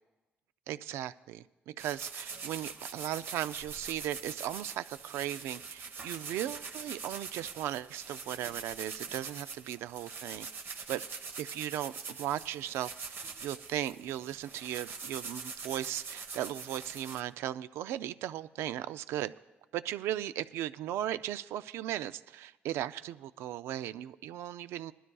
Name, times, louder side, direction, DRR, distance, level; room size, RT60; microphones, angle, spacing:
voice 1, 0.7-10.5 10.9-11.0 11.4-12.9 13.4-19.3 19.7-24.9, right 12 dB, 85° right, 0.4 m, -37 dB
sound 1, 1.8-17.2, right 5 dB, 65° right, 1.1 m, -43 dB
20.5 x 12.5 x 2.3 m
cardioid pair, 80°, 4 cm